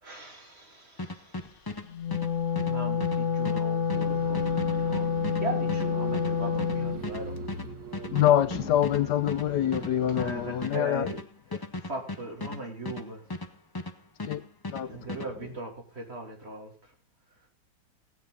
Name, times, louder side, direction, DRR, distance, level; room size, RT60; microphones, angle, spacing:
voice 1, 0.0-1.5 2.6-4.4 4.7-7.4 10.1-11.2 11.8-13.2 14.9-16.7, right 2 dB, 35° right, 3.1 m, -39 dB
sound 1, 1.0-13.9 14.2-15.3, left 2 dB, 30° left, 0.4 m, -37 dB
Wind instrument woodwind instrument, 1.9-7.0, left 6 dB, 50° left, 1.1 m, -28 dB
sound 2, 3.9-10.7, right 4 dB, 85° right, 2.1 m, -41 dB
voice 2, 8.1-11.1 14.3-14.4 14.7-14.9, left 11 dB, 75° left, 1.3 m, -25 dB
16.5 x 9.4 x 3.9 m
omnidirectional pair, 1.8 m